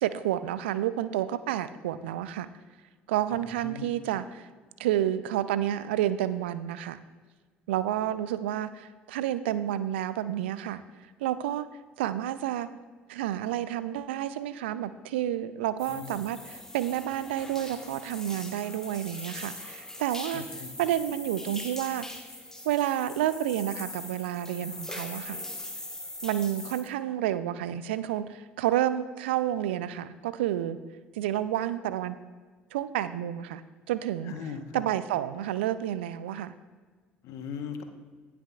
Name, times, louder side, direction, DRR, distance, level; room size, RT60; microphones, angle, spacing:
voice 1, 0.0-2.5 3.1-4.5 4.8-7.0 7.7-10.8 11.2-11.7 12.0-12.7 13.1-22.1 22.7-25.4 26.2-30.8 31.1-32.2 32.7-33.6 33.9-34.3 34.7-36.5, right 12 dB, 70° right, 14 dB, 0.4 m, -30 dB
sound 1, 15.8-26.8, left 1 dB, 10° left, 1.2 m, -41 dB
voice 2, 20.3-20.7 34.3-34.8 37.2-37.8, left 7 dB, 55° left, 7 dB, 0.9 m, -39 dB
17.5 x 6.0 x 2.3 m, 1.4 s
figure-of-eight pair, 60°, 6 cm